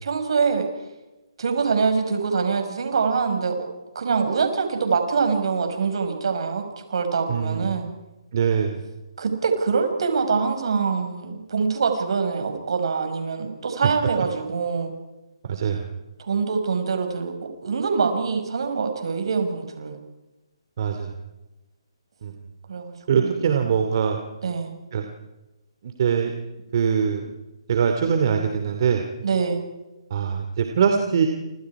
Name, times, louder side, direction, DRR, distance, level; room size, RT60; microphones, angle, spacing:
voice 1, 0.0-0.7 1.4-3.7 3.9-7.9 9.2-14.9 16.2-20.0 22.7-23.4 24.4-24.7 29.2-29.6, right 5 dB, 65° right, 5 dB, 5.9 m, -24 dB
voice 2, 7.3-7.8 8.3-8.8 15.4-15.9 20.8-21.1 22.2-22.3 23.1-24.2 24.9-25.1 25.8-26.3 26.7-27.3 27.7-29.0 30.1-31.3, right 7 dB, 50° right, 5 dB, 2.6 m, -22 dB
29.0 x 27.0 x 4.9 m, 1.0 s
hypercardioid pair, 155°, 3 cm